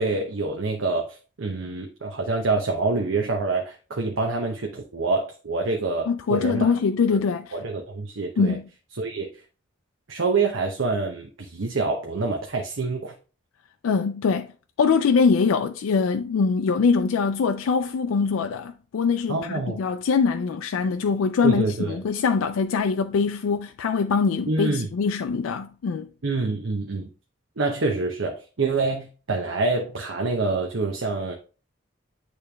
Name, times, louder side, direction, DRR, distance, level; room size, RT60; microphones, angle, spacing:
voice 1, 0.0-6.7 7.1-7.2 7.5-8.6 9.0-9.3 10.1-13.1 19.3-19.8 21.4-22.0 24.5-24.9 26.2-27.1 27.6-31.4, right 3 dB, 75° right, 0.8 m, -26 dB
voice 2, 6.1-7.5 8.4-8.7 13.8-14.5 14.8-26.1, left 5 dB, 85° left, 0.3 m, -23 dB
8.7 x 3.3 x 3.3 m
head